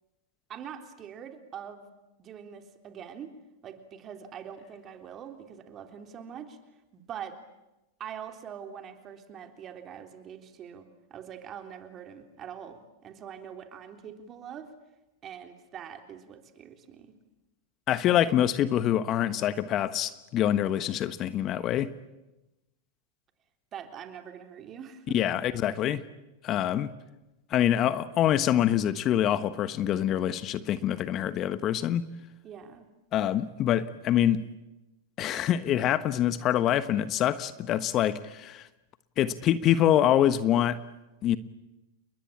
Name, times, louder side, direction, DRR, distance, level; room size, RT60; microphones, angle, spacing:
voice 1, 0.5-1.9 2.2-3.3 3.6-6.6 6.9-7.4 8.0-10.9 11.1-14.7 15.2-17.1 23.7-25.2 32.4-32.9, right 8 dB, 35° right, 3.6 m, -43 dB
voice 2, 17.9-21.9 25.1-26.0 26.4-26.9 27.5-32.0 33.1-34.5 35.2-38.7 39.2-40.8 41.2-41.4, left 11 dB, 40° left, 1.2 m, -25 dB
30.0 x 22.0 x 8.7 m
hypercardioid pair, 100°, 0 cm